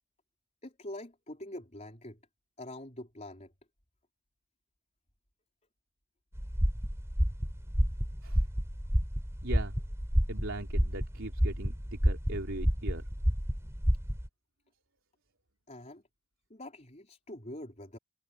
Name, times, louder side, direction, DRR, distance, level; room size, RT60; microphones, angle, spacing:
voice 1, 0.6-2.2 2.6-3.5 15.7-16.0 16.5-18.0, left 1 dB, 30° left, 4.3 m, -44 dB
sound 1, 6.3-14.3, equal, 15° right, 3.3 m, -30 dB
voice 2, 9.4-9.8 10.3-13.1, right 2 dB, 60° right, 3.9 m, -40 dB
head